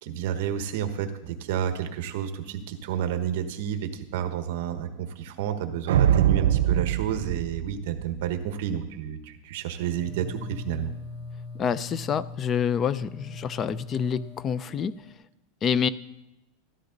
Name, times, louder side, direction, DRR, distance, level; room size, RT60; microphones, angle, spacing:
voice 1, 0.0-10.9, right 9 dB, 60° right, 8 dB, 1.2 m, -30 dB
sound 1, 5.9-8.4, right 11 dB, 90° right, 0.4 m, -23 dB
sound 2, 9.8-15.1, left 3 dB, 85° left, 5.7 m, -40 dB
voice 2, 11.6-14.9 15.6-15.9, left 7 dB, 20° left, 17 dB, 0.4 m, -27 dB
13.0 x 13.0 x 3.9 m, 0.90 s
supercardioid pair, 170°, 0 cm